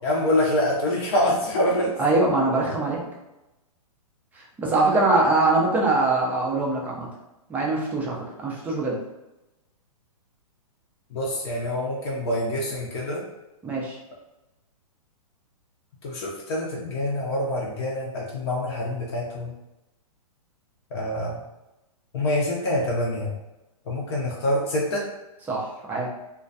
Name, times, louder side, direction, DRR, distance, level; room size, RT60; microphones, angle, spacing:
voice 1, 0.0-2.0 11.1-13.2 16.0-19.5 20.9-21.4 22.1-23.4 23.9-25.1, left 1 dB, 45° left, -4 dB, 0.6 m, -26 dB
voice 2, 2.0-3.0 4.3-7.1 7.5-9.0 13.6-14.0 25.5-26.1, right 2 dB, 10° right, -3 dB, 0.4 m, -23 dB
2.2 x 2.2 x 2.6 m, 0.98 s
hypercardioid pair, 130°, 19 cm